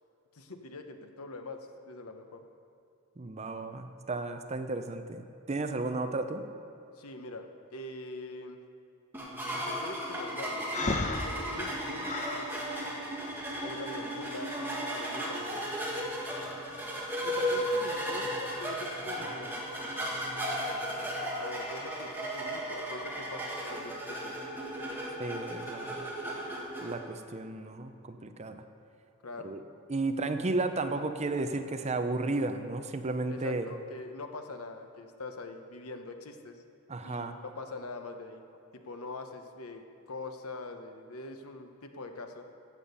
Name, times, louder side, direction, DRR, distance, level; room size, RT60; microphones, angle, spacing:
voice 1, 0.3-2.5 7.0-8.6 9.7-12.3 13.6-15.8 17.2-19.7 21.3-24.5 29.2-29.6 33.3-36.6 37.0-38.4 38.8-39.8 40.1-42.4, left 2 dB, 75° left, 6 dB, 1.0 m, -43 dB
voice 2, 3.2-6.4 19.1-19.2 25.2-26.0 26.8-28.6 29.4-29.6 29.9-33.7 36.9-37.3, right 2 dB, 30° right, 8 dB, 0.6 m, -33 dB
sound 1, 9.1-26.9, equal, 10° right, 1.7 m, -35 dB
Breathing, 10.7-12.5, left 2 dB, 35° left, 0.8 m, -33 dB
14.5 x 8.7 x 5.4 m, 2.6 s
head